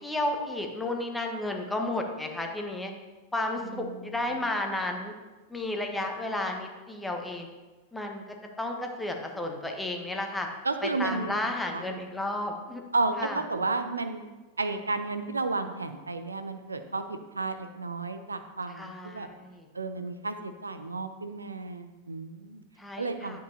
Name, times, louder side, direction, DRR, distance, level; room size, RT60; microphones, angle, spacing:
voice 1, 0.0-2.9 3.3-5.1 5.5-7.5 7.9-8.2 8.6-10.5 10.8-12.8 13.2-13.4 18.7-19.7 22.8-23.4, left 1 dB, 5° left, 2 dB, 1.1 m, -32 dB
voice 2, 10.6-11.4 11.7-11.8 12.9-14.2 14.6-17.0 17.4-19.3 19.7-22.6 23.0-23.4, right 3 dB, 80° right, 9 dB, 0.5 m, -32 dB
10.5 x 7.5 x 2.8 m, 1.2 s
figure-of-eight pair, 90°, 0 cm